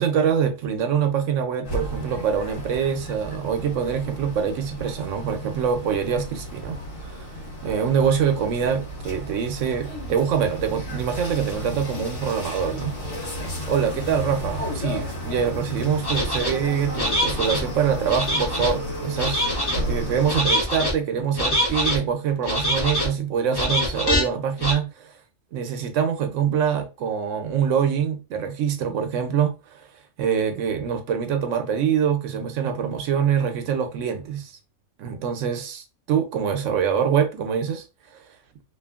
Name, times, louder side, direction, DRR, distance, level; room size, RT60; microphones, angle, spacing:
voice 1, 0.0-6.8 7.0-7.3 7.6-12.9 13.7-19.5 19.9-25.1 25.5-29.9 30.2-34.5 35.0-37.8 38.1-38.2, right 7 dB, 75° right, 0.9 m, -24 dB
sound 1, 1.6-20.4, equal, 65° left, 1.3 m, -33 dB
sound 2, 16.0-16.5 16.9-17.6 18.1-18.7 19.2-19.8 20.3-20.9 21.3-22.0 22.4-23.1 23.5-24.2 24.6-24.7, equal, 25° left, 0.6 m, -24 dB
2.6 x 2.5 x 2.3 m
omnidirectional pair, 1.3 m